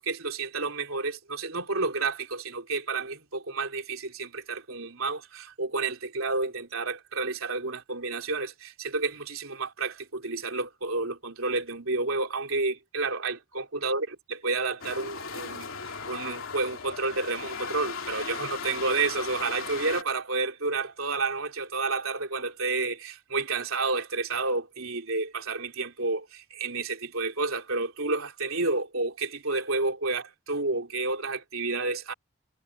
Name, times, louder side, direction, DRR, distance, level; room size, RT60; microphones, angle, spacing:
voice 1, 0.0-32.1, right 3 dB, 75° right, 3.3 m, -30 dB
sound 1, 14.8-20.0, left 5 dB, 75° left, 2.8 m, -37 dB
head